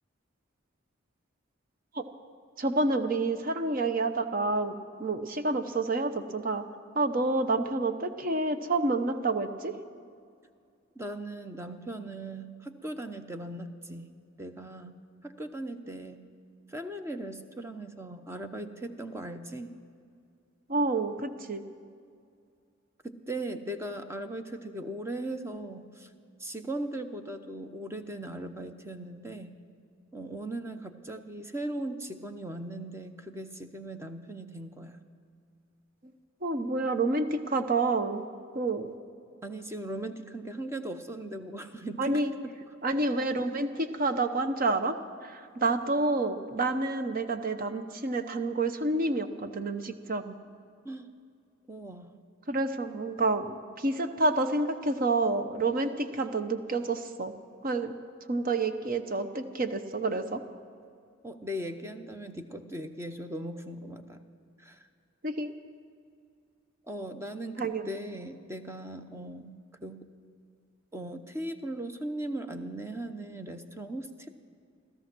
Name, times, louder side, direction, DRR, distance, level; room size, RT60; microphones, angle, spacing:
voice 1, 2.6-6.7 6.9-9.7 20.7-21.6 36.4-38.3 38.5-38.9 42.0-42.3 42.8-45.0 45.2-50.4 52.5-57.3 57.6-57.9 58.3-60.4 65.2-65.5 67.6-67.9, right 2 dB, 45° right, 9 dB, 0.8 m, -29 dB
voice 2, 10.9-14.1 14.4-16.2 16.7-19.8 23.0-26.1 26.4-29.5 30.1-35.0 39.4-42.2 42.6-42.7 50.8-51.2 51.7-52.2 61.2-64.2 64.6-64.9 66.9-70.0 70.9-74.3, right 1 dB, 15° right, 7 dB, 0.7 m, -38 dB
16.5 x 13.5 x 6.1 m, 2.3 s
head